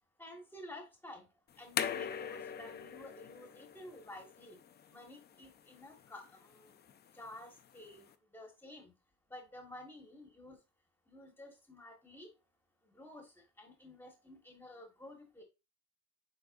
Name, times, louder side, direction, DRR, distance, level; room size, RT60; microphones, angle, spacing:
voice 1, 0.2-1.2 1.6-4.6 4.9-6.8 7.1-8.1 8.3-8.9 9.3-10.6 11.1-12.3 12.9-13.3 13.6-15.4, left 1 dB, 5° left, 3 dB, 1.7 m, -51 dB
sound 1, 1.5-8.1, left 8 dB, 35° left, 0.5 m, -43 dB
7.9 x 5.2 x 2.6 m, 0.26 s
cardioid pair, 170°, 31 cm